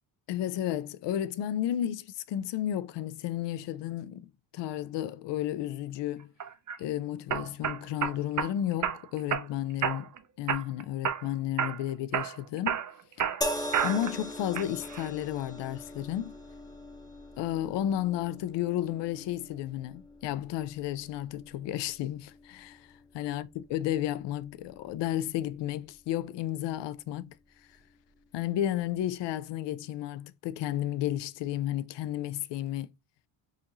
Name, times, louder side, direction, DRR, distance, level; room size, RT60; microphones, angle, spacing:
voice 1, 0.3-6.3 6.8-10.1 10.4-12.8 13.2-13.3 13.8-16.3 17.4-27.4 28.3-32.9, left 12 dB, 60° left, 0.5 m, -32 dB
sound 1, 6.4-6.8 7.3-8.5 8.8-9.5 9.8-10.2 10.5-11.3 11.6-11.8 12.1-14.2 14.5-15.1, right 8 dB, 40° right, 0.6 m, -30 dB
sound 2, 13.4-26.7 27.7-27.9, left 1 dB, 10° left, 0.7 m, -42 dB
4.9 x 2.6 x 2.9 m
cardioid pair, 115°, 48 cm